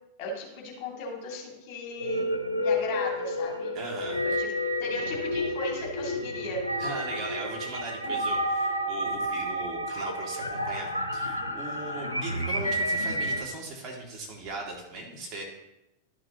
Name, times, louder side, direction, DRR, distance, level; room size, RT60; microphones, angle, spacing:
voice 1, 0.2-2.3 2.6-3.7 4.2-4.5 4.8-6.6 8.0-8.2, left 2 dB, 40° left, -2 dB, 2.2 m, -36 dB
sound 1, 1.9-13.4, equal, 90° left, 0.6 m, -30 dB
voice 2, 3.7-4.3 6.8-15.4, right 3 dB, 30° right, -2 dB, 2.0 m, -38 dB
12.0 x 6.2 x 2.9 m, 0.92 s
figure-of-eight pair, 90°, 0 cm